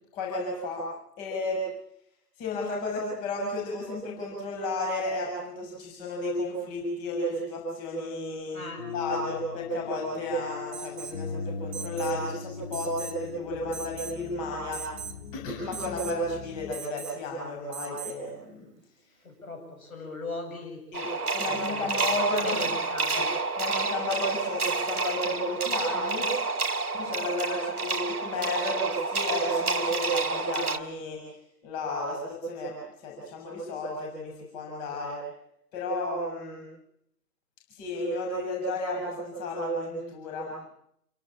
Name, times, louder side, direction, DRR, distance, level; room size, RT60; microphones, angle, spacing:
voice 1, 0.1-0.8 1.2-1.6 2.4-14.8 15.3-18.7 20.9-22.6 23.1-23.3 23.6-26.3 26.9-31.2 31.6-32.7 33.0-35.2 35.7-36.6 37.7-40.6, left 1 dB, 15° left, -1 dB, 6.8 m, -32 dB
voice 2, 8.5-8.8 19.2-20.8 21.5-22.2 22.4-23.3, left 3 dB, 55° left, 3 dB, 7.8 m, -39 dB
sound 1, 8.8-16.7, left 5 dB, 35° left, 2.1 m, -40 dB
Alarm, 10.7-11.2 11.7-12.2 12.7-13.2 13.7-14.2 14.7-15.2 15.7-16.2 16.7-17.2 17.7-18.2, right 10 dB, 20° right, 1.6 m, -40 dB
sound 2, 20.9-30.8, right 4 dB, 60° right, 1.8 m, -29 dB
28.5 x 17.5 x 8.7 m, 0.76 s
figure-of-eight pair, 140°, 49 cm